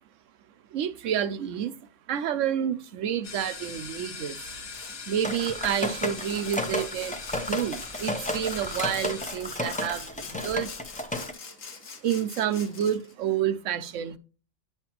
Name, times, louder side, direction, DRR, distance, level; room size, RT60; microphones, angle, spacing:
voice 1, 0.7-1.7 2.1-4.4 5.1-7.2 7.5-10.7 12.0-14.2, right 9 dB, 75° right, 1.0 m, -29 dB
sound 1, 3.2-9.2, left 4 dB, 55° left, 1.3 m, -41 dB
Sawing, 4.4-5.0 5.4-13.1, left 5 dB, 90° left, 1.5 m, -44 dB
sound 2, 5.2-11.3, left 1 dB, 10° left, 0.6 m, -33 dB
9.5 x 5.7 x 2.9 m
omnidirectional pair, 1.3 m